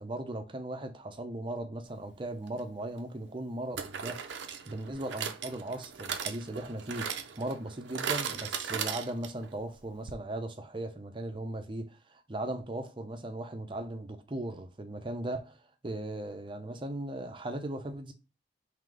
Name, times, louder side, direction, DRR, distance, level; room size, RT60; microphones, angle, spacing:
voice 1, 0.0-4.2 4.7-18.1, right 1 dB, 25° right, 0.5 m, -38 dB
sound 1, 2.5-2.6 3.8-9.5 9.8-9.9 10.1-10.2, right 7 dB, 70° right, 0.5 m, -37 dB
3.9 x 2.8 x 4.6 m
head